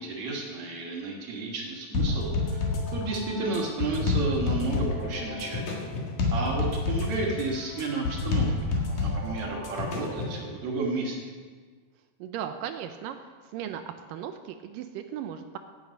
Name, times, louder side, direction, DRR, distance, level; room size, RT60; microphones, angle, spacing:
voice 1, 0.0-5.8 6.3-11.3, right 3 dB, 55° right, 0 dB, 2.6 m, -32 dB
sound 1, 1.9-10.4, left 3 dB, 60° left, 3.0 m, -29 dB
voice 2, 12.2-13.2 13.5-13.8 14.1-15.6, right 9 dB, 80° right, 8 dB, 2.1 m, -36 dB
16.5 x 7.2 x 5.2 m, 1.5 s
omnidirectional pair, 4.2 m